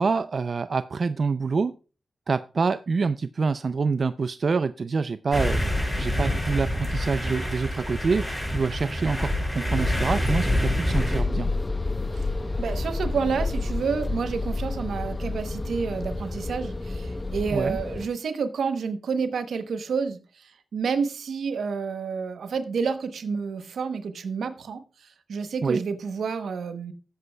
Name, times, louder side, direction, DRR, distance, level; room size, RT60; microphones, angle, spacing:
voice 1, 0.0-1.7 2.3-5.6 6.0-11.5 17.5-17.8 25.6-25.8, right 4 dB, 60° right, 13 dB, 0.3 m, -26 dB
sound 1, 5.3-11.2, left 1 dB, 10° left, 5.5 m, -26 dB
sound 2, 10.9-18.1, left 2 dB, 30° left, 0.7 m, -29 dB
voice 2, 12.6-24.8 25.3-26.9, right 5 dB, 85° right, 10 dB, 0.9 m, -29 dB
15.5 x 8.0 x 2.2 m, 0.34 s
cardioid pair, 55°, 0 cm